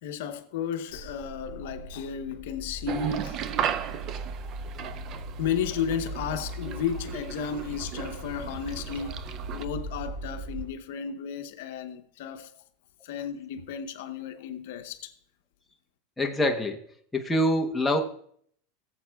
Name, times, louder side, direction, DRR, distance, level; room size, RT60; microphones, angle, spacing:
voice 1, 0.0-3.7 4.8-5.0 5.4-12.5 13.0-15.1, left 7 dB, 70° left, 0.8 m, -33 dB
sound 1, 0.9-10.6, right 2 dB, 90° right, 3.2 m, -39 dB
sound 2, 2.9-9.6, right 9 dB, 40° right, 0.5 m, -35 dB
voice 2, 16.2-16.8 17.1-18.0, left 1 dB, 5° left, 0.9 m, -25 dB
19.5 x 7.5 x 2.3 m
supercardioid pair, 140°, 0 cm